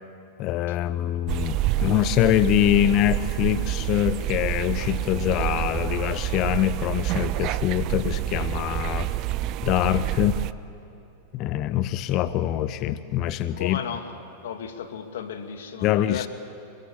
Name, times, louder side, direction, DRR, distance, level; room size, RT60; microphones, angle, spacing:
voice 1, 0.4-9.1 9.6-10.4 11.3-13.8 15.8-16.3, left 13 dB, 45° left, 14 dB, 0.8 m, -24 dB
sound 1, 1.3-10.5, right 14 dB, 45° right, 0.6 m, -28 dB
voice 2, 13.5-14.1 14.4-16.3, left 7 dB, 80° left, 8 dB, 2.0 m, -34 dB
24.0 x 22.0 x 8.6 m, 2.8 s
hypercardioid pair, 120°, 0 cm